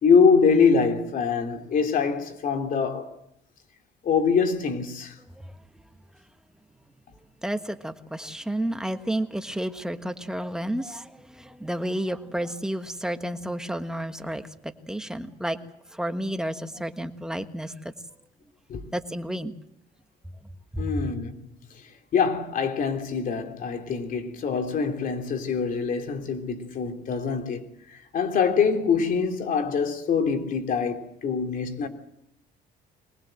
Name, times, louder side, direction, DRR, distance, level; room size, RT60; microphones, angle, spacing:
voice 1, 0.0-3.1 4.0-5.2 18.7-18.8 20.8-21.4 21.7-21.8 22.1-31.9, left 5 dB, 55° left, 3.1 m, -24 dB
voice 2, 7.4-15.6 15.9-17.9 18.9-19.5 20.7-21.1, right 1 dB, 5° right, 1.4 m, -31 dB
22.5 x 20.0 x 7.8 m
cardioid pair, 110°, 17 cm